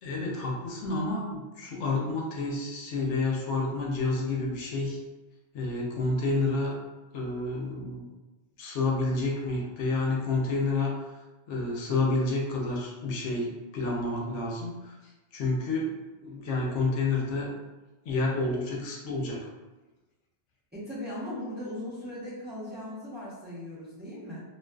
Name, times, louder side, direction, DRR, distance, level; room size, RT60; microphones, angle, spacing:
voice 1, 0.0-5.0 5.5-6.7 7.1-8.0 8.6-11.1 11.5-15.0 15.3-15.9 16.2-17.5 18.0-19.5, left 3 dB, 85° left, -2 dB, 0.9 m, -29 dB
voice 2, 20.7-24.4, left 1 dB, 10° right, -10 dB, 0.7 m, -38 dB
2.4 x 2.4 x 2.2 m, 1.1 s
omnidirectional pair, 1.2 m